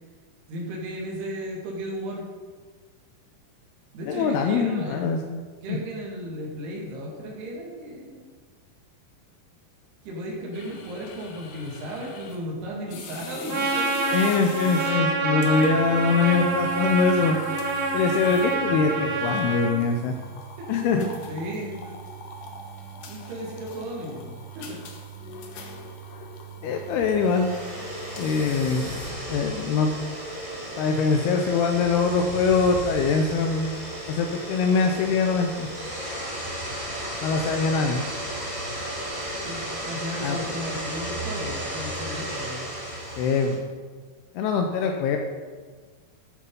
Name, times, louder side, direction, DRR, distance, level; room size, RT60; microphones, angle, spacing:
voice 1, 0.5-2.3 3.9-5.0 5.6-8.3 10.0-14.1 20.6-22.0 22.9-24.8 39.4-42.7, equal, 75° right, -2 dB, 4.2 m, -35 dB
voice 2, 4.1-5.4 5.7-5.8 14.1-17.4 17.9-20.2 20.7-21.1 26.6-27.5 28.2-28.9 29.3-30.0 30.8-33.7 34.1-35.7 37.2-38.0 40.2-40.4 43.2-43.6 44.4-45.2, left 4 dB, 80° left, 4 dB, 2.7 m, -23 dB
sound 1, 10.5-29.6, right 1 dB, 65° left, 2.4 m, -42 dB
Trumpet, 13.5-19.7, right 3 dB, 45° right, 2.6 m, -26 dB
sound 2, 27.0-43.5, right 1 dB, 15° right, 1.8 m, -34 dB
13.0 x 7.2 x 5.4 m, 1.5 s
omnidirectional pair, 4.8 m